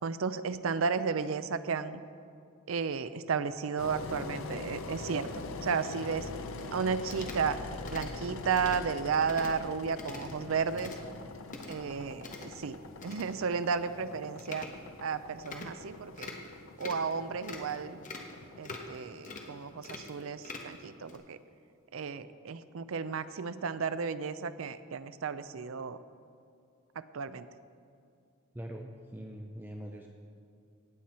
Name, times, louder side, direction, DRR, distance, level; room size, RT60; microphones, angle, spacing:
voice 1, 0.0-2.0 2.7-6.3 6.7-7.6 7.9-11.0 11.7-14.7 15.0-16.4 16.8-18.0 18.6-21.4 21.9-26.0 26.9-27.5, right 5 dB, 75° right, 13 dB, 0.5 m, -33 dB
Engine, 3.8-20.7, left 3 dB, 70° left, 0.7 m, -43 dB
sound 1, 6.6-6.8 7.1-7.4 7.9-8.1 8.5-8.8 9.3-9.6 9.9-10.3 10.6-11.0 11.5-11.8 12.2-12.5 13.0-13.3 13.7-13.8 14.4-14.7 15.4-15.7 16.2-16.5 16.8-17.1 17.4-17.8 18.0-18.3 18.6-19.0 19.2-19.5 19.8-20.7 21.1-21.2, left 3 dB, 40° left, 1.2 m, -44 dB
voice 2, 28.5-30.1, equal, 10° right, 2 dB, 0.5 m, -43 dB
18.0 x 7.6 x 4.3 m, 2.4 s
head